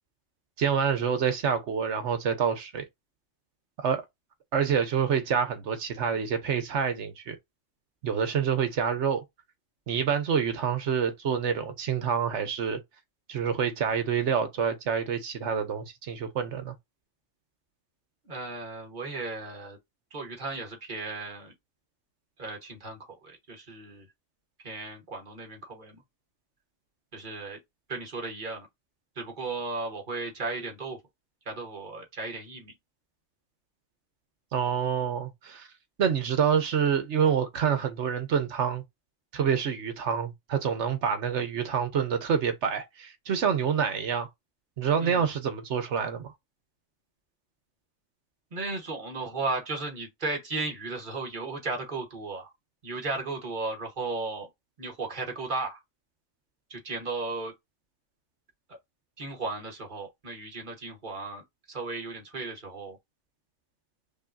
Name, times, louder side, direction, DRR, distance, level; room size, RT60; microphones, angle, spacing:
voice 1, 0.6-2.9 3.8-4.0 4.5-7.4 8.0-9.2 9.9-12.8 13.3-16.7 34.5-35.7 36.0-38.8 39.3-44.3 44.8-46.3, right 7 dB, 65° right, 1.1 m, -27 dB
voice 2, 18.2-19.8 20.1-21.5 22.4-24.1 24.6-26.0 27.1-27.6 27.9-28.7 29.1-31.0 31.4-32.7 45.0-45.3 48.5-52.5 52.8-54.5 54.8-55.8 56.7-57.5 58.7-58.8 59.2-61.4 61.7-63.0, right 3 dB, 40° right, 1.4 m, -35 dB
5.3 x 2.3 x 2.5 m
omnidirectional pair, 1.3 m